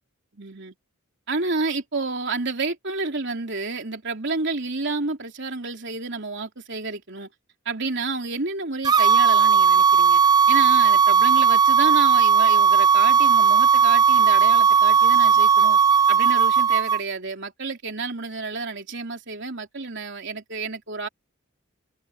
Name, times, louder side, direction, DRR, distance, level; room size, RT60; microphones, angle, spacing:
voice 1, 0.3-0.7 1.3-7.3 7.7-10.2 10.5-15.8 16.1-21.1, right 3 dB, 55° right, 3.5 m, -30 dB
sound 1, 8.8-17.0, right 7 dB, 20° right, 0.5 m, -17 dB
head